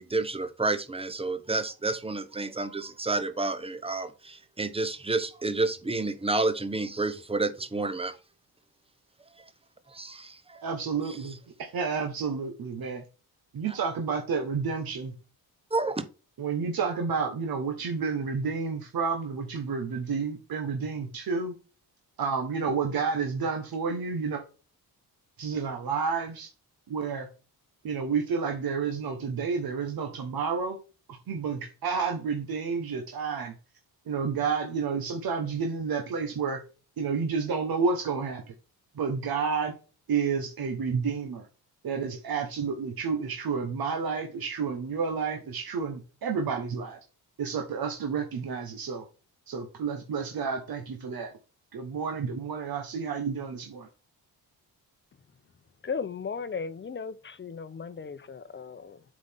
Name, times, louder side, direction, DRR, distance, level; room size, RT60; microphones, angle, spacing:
voice 1, 0.0-8.2 9.9-10.6 15.7-16.1, right 3 dB, 15° right, 0.8 m, -30 dB
voice 2, 10.6-13.0 13.5-15.1 16.4-21.5 22.2-24.4 25.4-26.5 26.9-27.3 27.8-30.8 31.1-33.6 34.0-36.6 37.0-38.5 38.9-39.7 40.1-41.5 41.8-47.0 47.4-49.0 49.5-51.3 51.7-53.9, right 5 dB, 65° right, 1.3 m, -30 dB
voice 3, 55.8-59.0, left 5 dB, 30° left, 0.8 m, -36 dB
8.0 x 5.1 x 3.6 m
wide cardioid pair, 130°, 39 cm